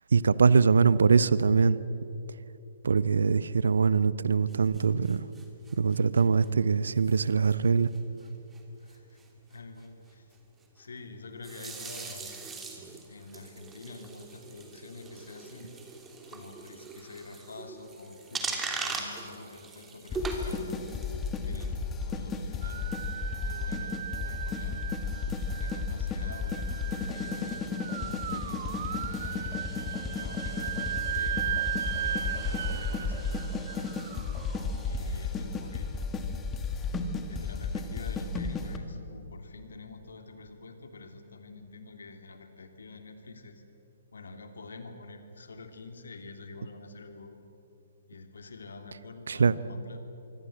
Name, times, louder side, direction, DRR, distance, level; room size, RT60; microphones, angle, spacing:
voice 1, 0.1-1.8 2.8-5.3 5.7-7.9 49.3-49.5, right 5 dB, 65° right, 18 dB, 0.8 m, -23 dB
sound 1, 4.5-6.4 7.0-7.2 7.4-7.7 7.9-8.0 8.3-8.4 8.5-8.6 8.9-9.3 11.4-21.7, right 4 dB, 15° right, 3.1 m, -40 dB
voice 2, 8.8-9.2 9.5-10.4 10.7-12.4 13.1-15.7 16.3-20.7 21.4-24.0 24.3-24.9 25.6-27.7 28.1-29.5 30.0-33.9 34.8-36.0 37.2-43.6 44.1-47.5 48.1-50.0, left 3 dB, 65° left, 6 dB, 3.0 m, -47 dB
sound 2, 20.1-38.8, left 4 dB, 15° left, 2.0 m, -33 dB
sound 3, 22.6-35.7, right 10 dB, 50° right, 1.1 m, -37 dB
25.5 x 24.0 x 7.9 m, 2.9 s
figure-of-eight pair, 125°, 0 cm